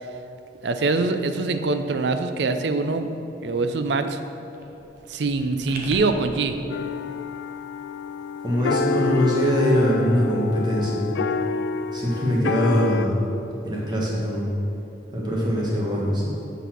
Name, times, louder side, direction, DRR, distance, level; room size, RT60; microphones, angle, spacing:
voice 1, 0.6-3.1 3.4-4.2 5.1-6.6, right 3 dB, 65° right, 8 dB, 0.5 m, -24 dB
sound 1, 4.5-6.5, right 2 dB, 50° right, 0.9 m, -40 dB
sound 2, 6.7-13.0, left 5 dB, 70° left, 0.3 m, -28 dB
voice 2, 8.4-11.0 11.9-13.2 13.6-14.5 15.1-16.3, equal, 25° right, -4 dB, 1.4 m, -22 dB
8.2 x 4.1 x 6.0 m, 2.9 s
head